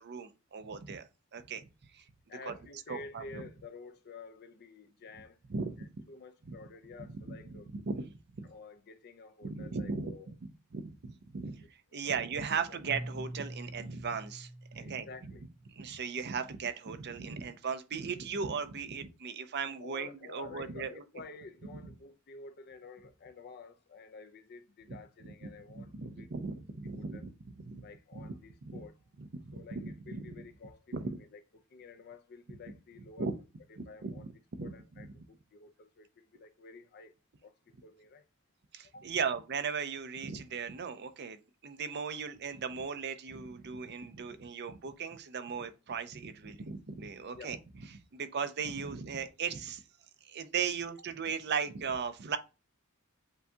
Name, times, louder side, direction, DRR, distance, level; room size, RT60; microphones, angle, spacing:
voice 1, 0.0-1.7 1.9-2.0 2.5-2.6 2.9-3.4 5.5-5.9 6.5-6.6 7.1-8.0 8.4-8.5 9.4-10.1 10.7-11.6 11.9-15.3 15.7-21.0 24.9-25.0 25.4-27.8 28.1-28.9 29.2-30.4 30.9-31.2 32.5-32.6 33.2-33.3 33.8-35.1 38.7-47.6 48.1-49.8 50.2-52.4, right 5 dB, 50° right, 0.6 m, -37 dB
voice 2, 2.3-5.4 5.8-7.8 8.4-10.3 11.9-12.2 12.7-12.8 14.7-15.4 19.8-26.3 27.0-27.3 27.8-28.9 29.5-30.9 31.3-33.3 33.7-34.3 34.6-37.1 37.4-37.5 37.8-38.2 38.9-39.1 47.3-47.5, left 4 dB, 50° left, 0.5 m, -51 dB
Keyboard (musical), 12.8-15.8, right 1 dB, 5° right, 0.9 m, -45 dB
8.0 x 2.7 x 2.3 m
head